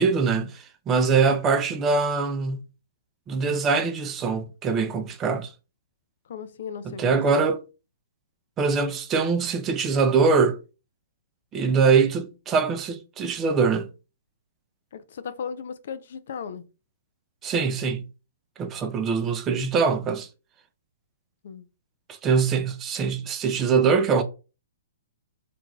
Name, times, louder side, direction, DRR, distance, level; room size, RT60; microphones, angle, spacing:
voice 1, 0.0-2.6 3.3-5.5 6.8-7.6 8.6-10.6 11.5-13.9 17.4-18.0 18.6-20.3 22.2-24.2, right 5 dB, 20° right, 0.4 m, -23 dB
voice 2, 6.3-7.2 14.9-16.6 21.4-21.6, left 6 dB, 65° left, 0.3 m, -36 dB
2.5 x 2.2 x 3.0 m
hypercardioid pair, 130°, 0 cm